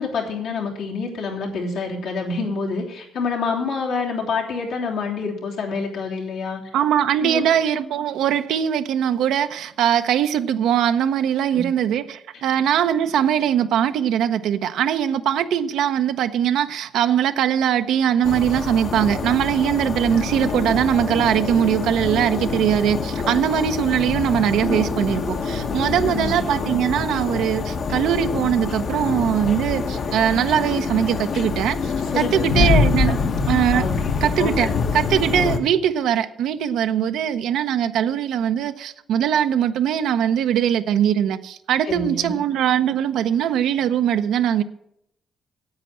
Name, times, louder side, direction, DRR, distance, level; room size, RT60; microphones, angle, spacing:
voice 1, 0.0-6.6 7.2-7.4 11.5-11.6 25.8-26.4 32.0-32.7 33.1-33.2 33.7-34.7 41.8-42.3, left 4 dB, 85° left, 3.1 m, -27 dB
voice 2, 6.7-33.2 33.5-33.8 34.2-34.7 34.9-44.6, right 9 dB, 80° right, 0.7 m, -21 dB
sound 1, 18.2-35.6, left 4 dB, 55° left, 1.1 m, -25 dB
9.7 x 8.5 x 7.7 m
cardioid pair, 90°, 0 cm